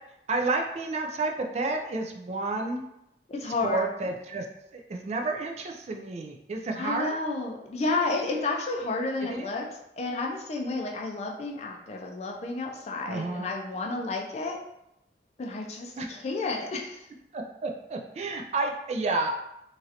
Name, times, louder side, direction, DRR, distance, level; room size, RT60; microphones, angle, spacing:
voice 1, 0.3-2.8 3.6-4.5 4.7-7.2 9.2-9.6 13.1-13.5 16.0-16.1 17.3-19.4, right 3 dB, 40° right, 2 dB, 0.3 m, -30 dB
voice 2, 3.3-3.9 6.8-9.6 10.0-14.6 15.4-17.0, left 3 dB, 40° left, 1 dB, 0.4 m, -31 dB
3.0 x 2.5 x 2.7 m, 0.84 s
head